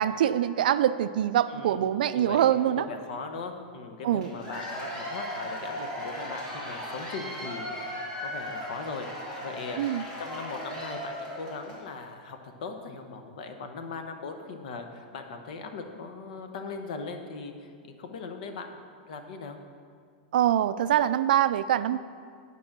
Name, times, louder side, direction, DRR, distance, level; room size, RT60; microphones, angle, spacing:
voice 1, 0.0-2.9 4.0-4.3 9.8-10.0 20.3-22.0, right 11 dB, 70° right, 14 dB, 0.3 m, -24 dB
voice 2, 1.5-2.4 2.8-9.1 9.4-9.8 10.2-18.8 19.1-19.6, left 4 dB, 55° left, 6 dB, 0.9 m, -39 dB
Cheering / Applause / Crowd, 4.2-11.9, equal, 20° left, 1.3 m, -37 dB
8.9 x 5.4 x 5.8 m, 2.1 s
supercardioid pair, 175°, 5 cm